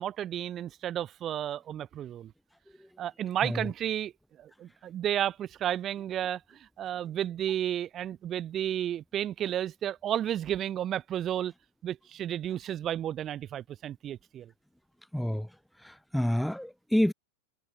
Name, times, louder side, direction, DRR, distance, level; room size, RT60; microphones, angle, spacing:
voice 1, 0.0-2.3 3.0-4.1 4.4-11.5 11.8-14.5, right 11 dB, 30° right, 5.0 m, -32 dB
voice 2, 15.1-15.5 15.8-17.1, equal, ahead, 4.0 m, -28 dB
figure-of-eight pair, 90°, 0 cm